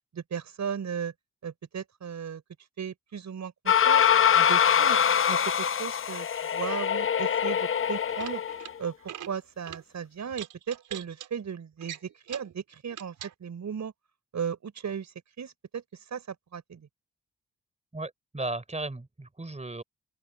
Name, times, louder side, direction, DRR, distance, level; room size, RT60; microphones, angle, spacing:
voice 1, 0.1-1.1 1.4-2.4 2.8-4.1 4.3-5.0 5.3-6.3 6.5-8.4 8.8-13.1 13.4-13.9 14.3-15.8 16.1-16.9, right 7 dB, 65° right, 6.2 m, -36 dB
sound 1, 3.7-8.7, left 8 dB, 45° left, 0.8 m, -24 dB
sound 2, 8.0-8.7 9.0-9.3 9.7-9.8 10.3-11.3 11.8-12.5 12.9-13.3, right 10 dB, 80° right, 4.5 m, -42 dB
voice 2, 17.9-19.8, right 2 dB, 20° right, 4.7 m, -35 dB
open air
supercardioid pair, 45°, 31 cm